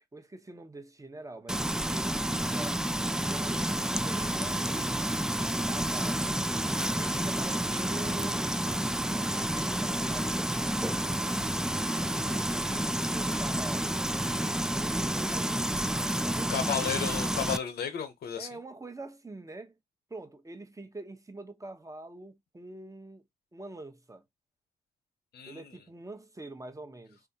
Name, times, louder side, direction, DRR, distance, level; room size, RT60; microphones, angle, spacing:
voice 1, 0.1-2.8 3.1-6.3 7.0-8.6 9.2-10.9 11.7-13.9 14.7-15.9 16.2-16.7 18.3-19.8 20.1-23.2 23.5-24.2 25.5-27.2, right 2 dB, 20° right, 0.8 m, -45 dB
Frying (food), 1.5-17.6, right 1 dB, 5° right, 0.3 m, -30 dB
voice 2, 16.5-18.5 25.3-25.8, left 8 dB, 80° left, 0.9 m, -33 dB
3.4 x 2.6 x 2.7 m
supercardioid pair, 50°, 16 cm